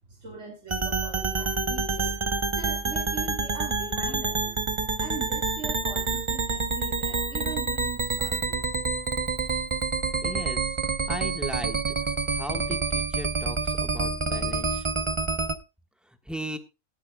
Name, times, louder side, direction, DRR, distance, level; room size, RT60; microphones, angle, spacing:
voice 1, 0.1-2.2 2.5-4.6 5.0-8.7, right 4 dB, 55° right, 1 dB, 3.0 m, -41 dB
sound 1, 0.7-15.6, right 4 dB, 25° right, 0.8 m, -28 dB
voice 2, 10.2-10.7 11.1-11.8 12.3-14.9 16.1-16.6, equal, ahead, 7 dB, 1.3 m, -37 dB
18.0 x 11.0 x 2.3 m, 0.27 s
omnidirectional pair, 1.4 m